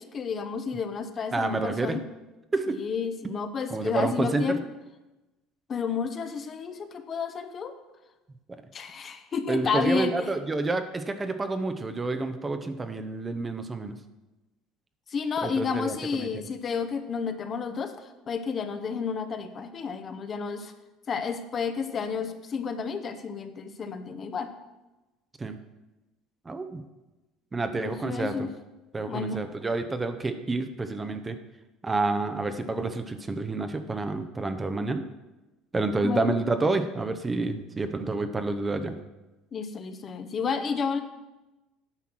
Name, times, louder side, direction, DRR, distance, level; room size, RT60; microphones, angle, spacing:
voice 1, 0.0-2.0 2.7-4.6 5.7-7.7 8.7-10.4 15.1-20.7 21.1-24.5 27.7-28.5 29.1-29.4 36.0-36.3 39.5-41.0, left 5 dB, 35° left, 8 dB, 0.8 m, -31 dB
voice 2, 1.3-2.0 2.5-2.8 3.2-3.3 3.7-4.6 9.5-14.0 15.4-16.3 25.4-25.6 26.5-26.8 27.5-28.5 28.9-31.4 31.8-35.0 35.7-38.9, right 3 dB, 20° right, 8 dB, 0.7 m, -29 dB
9.8 x 5.8 x 6.1 m, 1.1 s
cardioid pair, 115°, 0 cm